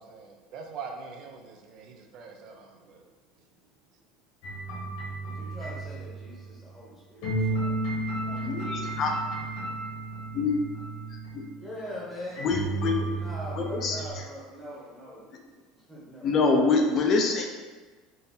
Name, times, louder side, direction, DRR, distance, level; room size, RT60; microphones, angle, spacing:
voice 1, 0.0-3.0, right 5 dB, 50° right, 3 dB, 0.5 m, -43 dB
sound 1, 4.4-6.6 7.2-11.5 12.4-14.1, right 2 dB, 65° left, 1.2 m, -33 dB
voice 2, 5.2-7.7 8.2-9.0 9.7-9.8 11.5-12.5 13.1-15.3 15.9-16.6, left 1 dB, ahead, -8 dB, 0.9 m, -42 dB
voice 3, 8.3-9.1 10.3-10.5 12.4-13.1 13.6-14.2 16.2-17.5, left 4 dB, 35° left, 2 dB, 0.4 m, -25 dB
3.8 x 2.6 x 2.7 m, 1.4 s
cardioid pair, 155°, 0 cm